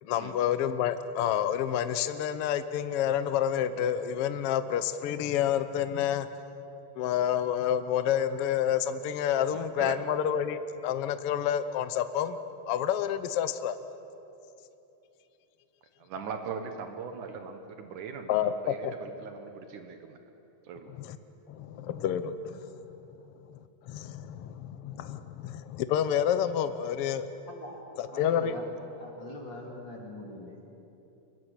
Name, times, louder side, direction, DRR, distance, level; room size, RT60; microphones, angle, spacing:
voice 1, 0.0-6.3 7.0-12.4 12.7-13.8 18.3-18.9 21.0-21.2 21.5-22.8 23.5-23.6 23.9-27.3 28.0-28.5, left 9 dB, 70° left, 11 dB, 1.4 m, -29 dB
voice 2, 9.5-10.0 16.0-20.2 20.6-20.9, right 6 dB, 75° right, 6 dB, 2.7 m, -40 dB
voice 3, 27.5-27.8 28.1-28.6 29.0-30.6, left 2 dB, 40° left, -1 dB, 2.8 m, -42 dB
24.5 x 21.5 x 8.2 m, 2.9 s
omnidirectional pair, 3.7 m